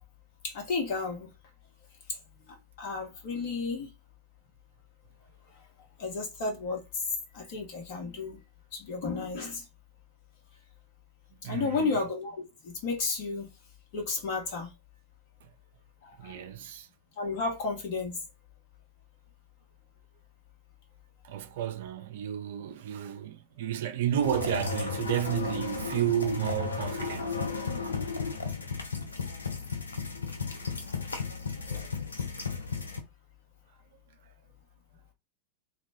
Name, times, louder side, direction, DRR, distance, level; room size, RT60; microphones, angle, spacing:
voice 1, 0.4-1.3 2.5-3.9 6.0-6.8 7.3-8.4 8.7-9.7 11.4-13.5 13.9-14.7 16.0-16.5 17.2-18.2 31.7-31.9, left 4 dB, 50° left, 1.0 m, -33 dB
voice 2, 11.4-11.9 16.2-16.9 21.2-27.5, right 11 dB, 55° right, 0.4 m, -32 dB
sound 1, 24.2-33.0, left 4 dB, 75° left, 0.5 m, -34 dB
2.3 x 2.0 x 3.4 m
figure-of-eight pair, 90°, 0 cm